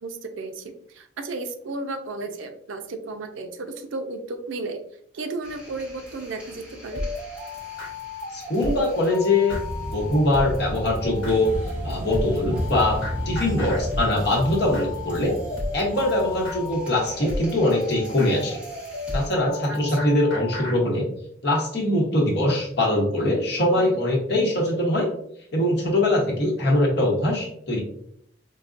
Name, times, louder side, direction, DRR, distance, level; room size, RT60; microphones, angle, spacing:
voice 1, 0.0-4.8 5.1-7.0 19.7-20.0 23.8-24.0, right 3 dB, 85° right, 7 dB, 0.5 m, -34 dB
sound 1, 5.4-19.3, equal, 5° right, 1.0 m, -35 dB
sound 2, 6.9-20.8, left 2 dB, 80° left, 1.0 m, -34 dB
voice 2, 8.3-9.6 9.9-11.5 11.8-15.3 15.7-18.6 19.1-21.1 21.4-25.1 25.5-27.8, left 1 dB, 60° left, -1 dB, 1.0 m, -22 dB
4.7 x 2.2 x 2.5 m, 0.68 s
head